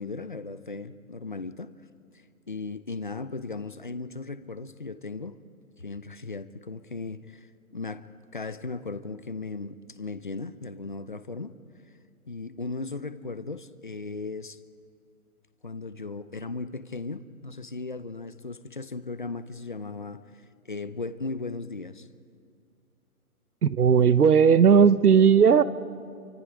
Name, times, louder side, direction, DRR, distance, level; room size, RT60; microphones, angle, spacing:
voice 1, 0.0-1.7 2.5-5.4 5.8-7.5 7.7-8.0 8.3-11.5 12.3-14.6 15.6-20.2 20.7-22.1, left 3 dB, 35° left, 13 dB, 0.6 m, -36 dB
voice 2, 23.6-25.6, right 7 dB, 80° right, 15 dB, 1.1 m, -17 dB
28.0 x 24.5 x 5.0 m, 2.4 s
hypercardioid pair, 170°, 45 cm